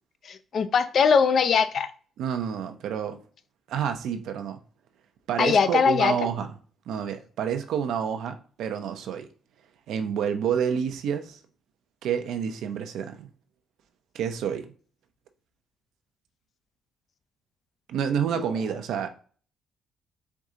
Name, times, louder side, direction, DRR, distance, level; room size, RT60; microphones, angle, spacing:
voice 1, 0.2-1.9 5.4-6.1, left 6 dB, 55° left, 0.5 m, -21 dB
voice 2, 2.2-3.2 3.7-4.6 5.3-6.5 6.9-9.3 9.9-11.4 12.0-13.3 14.1-14.7 17.9-19.1, right 8 dB, 80° right, 0.6 m, -29 dB
4.7 x 2.7 x 3.7 m
cardioid pair, 90°, 0 cm